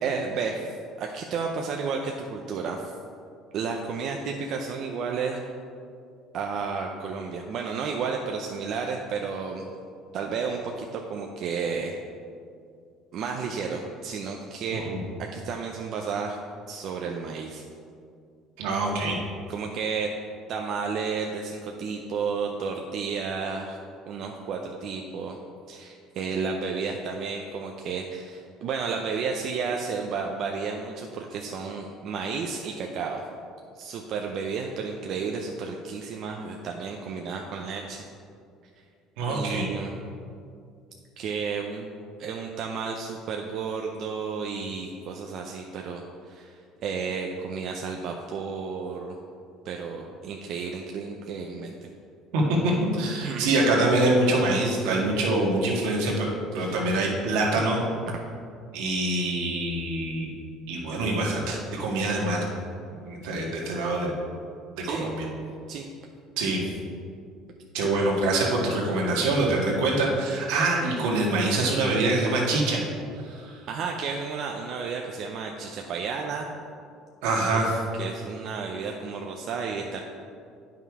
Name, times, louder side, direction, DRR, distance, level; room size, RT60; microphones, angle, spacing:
voice 1, 0.0-2.9 3.5-5.4 6.3-9.7 10.1-12.0 13.1-14.8 15.3-16.4 16.7-17.6 19.5-20.2 20.5-23.8 24.1-25.4 25.7-33.2 33.7-38.0 39.3-39.9 41.2-41.9 42.2-49.2 49.6-51.7 53.2-53.5 56.6-56.7 58.1-58.2 64.8-65.1 65.7-65.9 73.7-76.5 77.5-77.6 77.9-80.0, right 5 dB, 55° right, 1 dB, 0.7 m, -32 dB
voice 2, 18.6-19.2 39.2-39.7 52.3-56.3 56.5-57.8 58.7-60.3 60.7-62.4 63.0-64.2 64.9-65.2 66.4-66.6 67.7-72.8 73.3-73.6 77.2-77.8, right 2 dB, 80° right, -2 dB, 1.8 m, -25 dB
9.1 x 5.7 x 4.8 m, 2.3 s
supercardioid pair, 105°, 0 cm